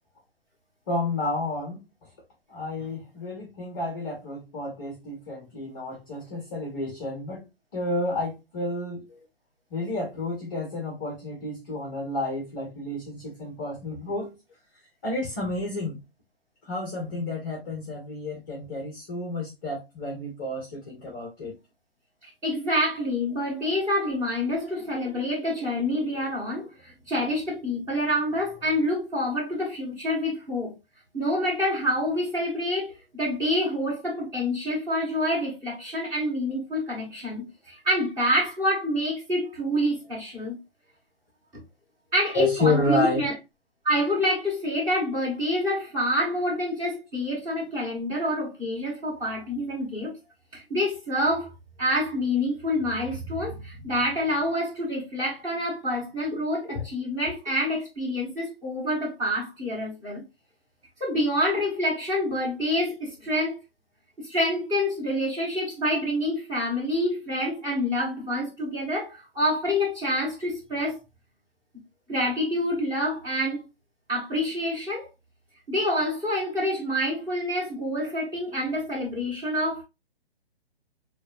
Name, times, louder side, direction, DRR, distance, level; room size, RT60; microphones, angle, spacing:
voice 1, 0.9-1.8 2.5-7.5 7.7-9.1 9.7-14.3 15.0-16.0 16.6-21.5 23.0-23.1 42.3-43.2 56.6-56.8, left 2 dB, 20° left, 0.7 m, -30 dB
voice 2, 22.2-30.7 31.1-40.5 42.1-43.3 43.8-50.1 50.5-51.5 51.8-60.2 61.0-63.6 64.2-71.0 72.1-73.6 74.1-75.1 75.7-79.8, left 1 dB, 15° right, 1.6 m, -27 dB
6.2 x 2.3 x 2.6 m
figure-of-eight pair, 135°, 31 cm